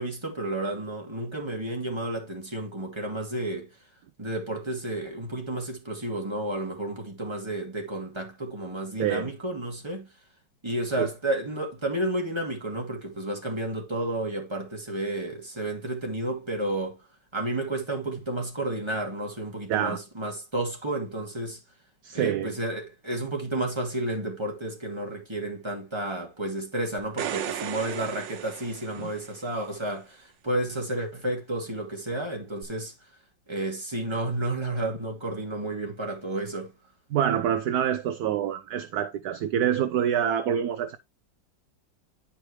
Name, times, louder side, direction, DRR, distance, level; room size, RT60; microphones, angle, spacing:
voice 1, 0.0-3.7 4.2-10.1 10.6-17.0 17.3-21.6 22.1-32.9 33.5-36.7, right 1 dB, 15° right, 2.6 m, -31 dB
voice 2, 9.0-9.3 11.0-11.1 19.7-20.0 22.0-22.5 29.0-29.1 37.1-41.0, right 9 dB, 65° right, 1.1 m, -26 dB
sound 1, 27.0-29.5 32.6-32.7, right 9 dB, 90° right, 1.5 m, -35 dB
11.5 x 4.7 x 3.1 m
omnidirectional pair, 1.9 m